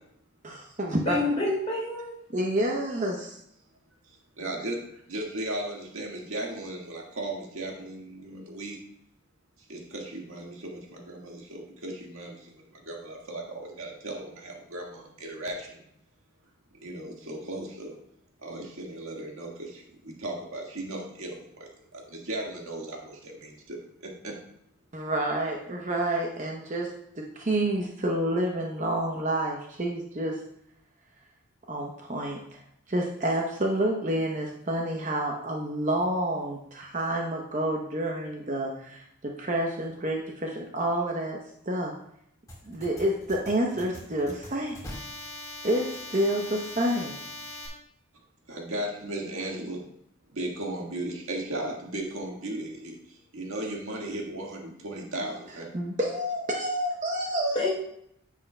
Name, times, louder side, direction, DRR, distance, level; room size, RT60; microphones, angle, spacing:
voice 1, 0.4-1.2 2.3-3.4 24.9-30.4 31.7-32.6 32.9-41.4 41.7-41.9 42.7-44.8 45.6-47.2 55.7-57.7, right 1 dB, 35° right, 0 dB, 0.8 m, -29 dB
voice 2, 1.0-2.1 57.5-57.7, left 2 dB, 30° left, -4 dB, 3.3 m, -27 dB
voice 3, 4.4-8.8 9.7-15.8 16.7-18.0 18.4-24.3 48.5-49.8 50.3-55.7, right 1 dB, 85° right, -1 dB, 1.7 m, -36 dB
sound 1, 42.5-47.7, left 1 dB, 15° left, 1.8 m, -41 dB
9.7 x 7.5 x 2.2 m, 0.73 s
head